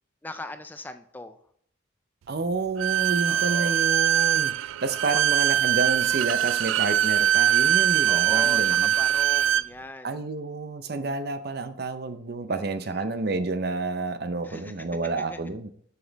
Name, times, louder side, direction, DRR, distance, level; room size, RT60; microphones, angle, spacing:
voice 1, 0.2-1.4 3.2-3.8 5.1-5.2 8.1-10.2 12.5-13.2 14.4-14.9 15.2-15.4, left 1 dB, 10° left, 9 dB, 0.4 m, -40 dB
voice 2, 2.3-8.9 10.0-15.7, right 3 dB, 55° right, 10 dB, 0.6 m, -29 dB
Bowed string instrument, 2.8-9.7, right 11 dB, 85° right, 0.3 m, -22 dB
7.2 x 6.8 x 4.0 m, 0.62 s
head